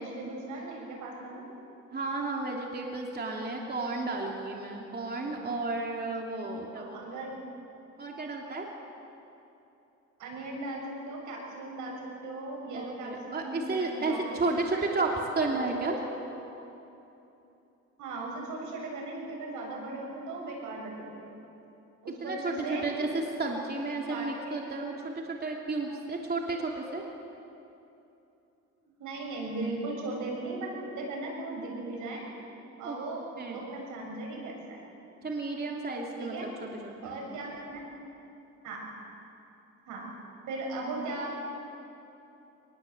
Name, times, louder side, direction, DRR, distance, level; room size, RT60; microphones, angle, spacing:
voice 1, 0.0-1.4 6.7-7.4 10.2-14.6 14.9-16.0 16.2-16.6 18.0-21.3 22.0-22.9 24.1-24.6 29.0-32.2 32.8-34.8 36.2-36.5 37.0-37.8 38.6-38.8 39.9-40.1 40.5-41.5, right 2 dB, 85° right, -1 dB, 7.3 m, -38 dB
voice 2, 1.9-7.2 8.0-8.7 12.7-16.0 22.2-23.1 23.4-27.0 32.8-33.0 33.4-33.7 35.2-37.2, right 3 dB, 30° right, 0 dB, 3.1 m, -32 dB
25.0 x 20.5 x 8.0 m, 2.9 s
cardioid pair, 90°, 30 cm